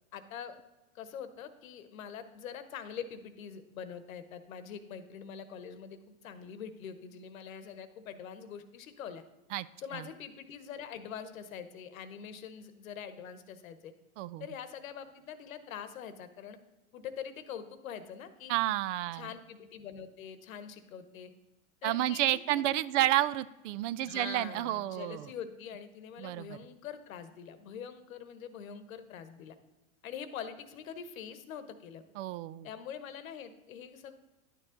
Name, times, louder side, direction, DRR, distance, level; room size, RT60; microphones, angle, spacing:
voice 1, 0.1-0.6 0.9-9.2 9.8-13.9 14.4-16.6 16.9-18.5 19.1-21.3 21.8-23.1 24.0-29.6 30.0-32.0 32.6-34.1, left 8 dB, 85° left, 11 dB, 1.0 m, -44 dB
voice 2, 18.5-19.3 21.8-25.3 26.2-26.6 32.2-32.7, right 14 dB, 65° right, 18 dB, 0.5 m, -30 dB
10.5 x 6.8 x 3.8 m, 1.1 s
hypercardioid pair, 115°, 40 cm